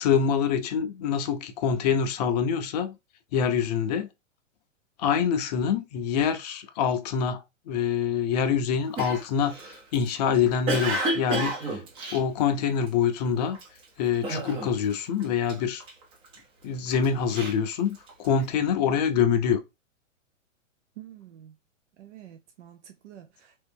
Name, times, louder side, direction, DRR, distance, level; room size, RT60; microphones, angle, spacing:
voice 1, 0.0-3.0 3.3-4.1 5.0-11.8 12.1-13.6 14.0-15.8 16.6-19.6, left 7 dB, 35° left, 0.5 m, -25 dB
Cough, 9.0-13.0 13.5-13.8 14.2-14.9 15.2-16.4 16.9-18.4, right 2 dB, 15° right, 0.5 m, -31 dB
voice 2, 21.0-21.5 22.0-23.6, right 11 dB, 65° right, 0.6 m, -48 dB
3.0 x 2.7 x 3.4 m
hypercardioid pair, 140°, 39 cm